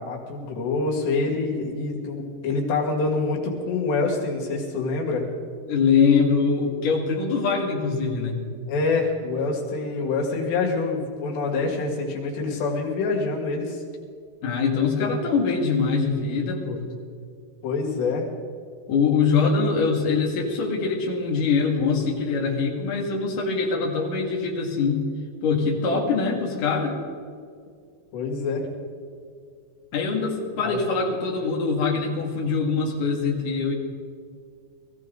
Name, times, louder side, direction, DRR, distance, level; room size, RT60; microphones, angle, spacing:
voice 1, 0.0-5.2 8.7-13.8 15.0-15.2 17.6-18.3 28.1-28.6 30.6-30.8, left 3 dB, 85° left, -1 dB, 4.3 m, -26 dB
voice 2, 5.7-8.4 14.4-16.8 18.9-25.1 25.4-27.0 29.9-33.7, left 5 dB, 55° left, -1 dB, 3.4 m, -23 dB
22.0 x 14.5 x 3.9 m, 2.2 s
omnidirectional pair, 4.8 m